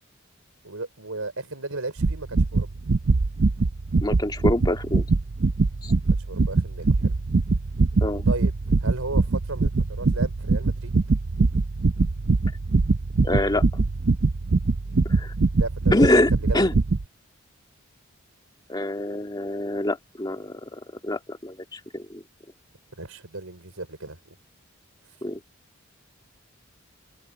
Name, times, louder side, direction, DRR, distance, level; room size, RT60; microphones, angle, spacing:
voice 1, 0.6-2.7 6.1-7.1 8.3-8.5 8.8-10.9 15.6-16.6 23.0-24.4, right 2 dB, 75° right, 4.8 m, -35 dB
sound 1, 2.0-17.0, right 3 dB, 55° right, 0.6 m, -23 dB
voice 2, 4.0-5.1 5.8-5.9 8.0-8.2 13.2-13.6 15.1-15.3 15.9-16.7 18.7-22.2 25.2-25.4, left 1 dB, 20° left, 2.2 m, -25 dB
head